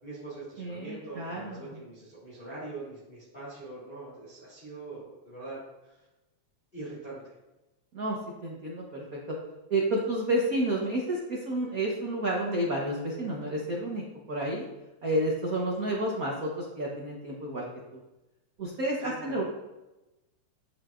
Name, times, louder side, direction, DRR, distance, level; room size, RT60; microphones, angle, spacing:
voice 1, 0.0-6.1 6.7-7.3 19.0-19.4, right 2 dB, 15° left, -10 dB, 3.1 m, -43 dB
voice 2, 0.6-1.8 7.9-9.4 9.7-14.7 15.0-17.7 18.6-19.4, right 1 dB, 80° right, -3 dB, 0.7 m, -30 dB
8.6 x 8.5 x 2.5 m, 1.0 s
omnidirectional pair, 3.5 m